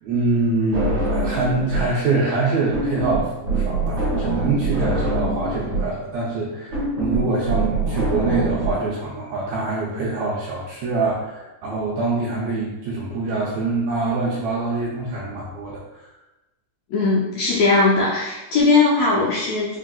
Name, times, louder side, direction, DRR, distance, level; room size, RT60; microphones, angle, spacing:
voice 1, 0.0-15.8, right 3 dB, 80° right, -4 dB, 1.6 m, -24 dB
sound 1, 0.7-2.0 2.2-8.7, right 2 dB, 50° right, 1.6 m, -24 dB
voice 2, 16.9-19.8, left 3 dB, 80° left, -6 dB, 1.6 m, -19 dB
4.7 x 3.6 x 2.2 m, 1.0 s
omnidirectional pair, 3.7 m